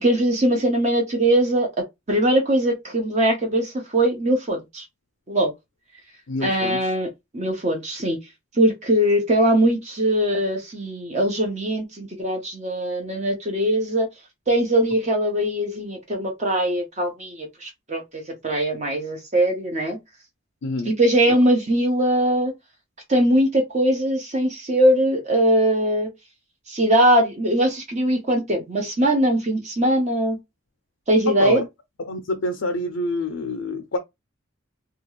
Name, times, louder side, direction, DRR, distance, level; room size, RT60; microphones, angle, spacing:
voice 1, 0.0-1.7 2.1-4.8 5.3-5.5 6.4-7.1 7.3-8.2 8.6-14.1 14.5-20.0 20.9-22.5 23.1-26.1 26.7-30.4 31.1-31.6, right 1 dB, 35° right, 0.8 m, -21 dB
voice 2, 6.3-6.9 20.6-20.9 21.3-21.4 31.4-31.7 32.0-34.0, left 2 dB, 80° left, 0.5 m, -27 dB
2.9 x 2.3 x 3.0 m
head